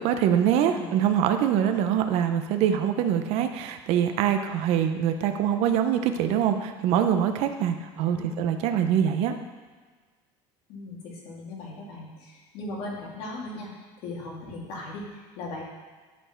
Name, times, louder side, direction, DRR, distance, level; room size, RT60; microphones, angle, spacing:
voice 1, 0.0-9.3, right 9 dB, 65° right, 7 dB, 0.7 m, -24 dB
voice 2, 0.7-1.1 8.0-8.6 10.7-13.7 14.0-15.6, left 2 dB, 65° left, -3 dB, 2.3 m, -38 dB
11.0 x 4.4 x 4.5 m, 1.4 s
cardioid pair, 140°, 12 cm